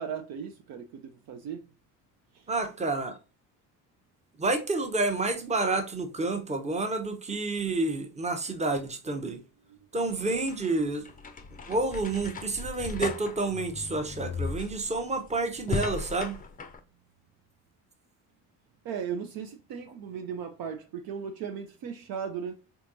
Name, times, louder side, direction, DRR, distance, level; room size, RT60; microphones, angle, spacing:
voice 1, 0.0-1.6 2.3-2.5 18.8-22.6, right 7 dB, 50° right, 0.6 m, -37 dB
voice 2, 2.5-3.2 4.4-9.4 9.9-11.1 11.7-16.4, right 3 dB, 15° right, 0.8 m, -29 dB
sound 1, 10.1-16.8, left 4 dB, 20° left, 0.6 m, -37 dB
4.5 x 3.5 x 2.6 m
figure-of-eight pair, 40°, 48 cm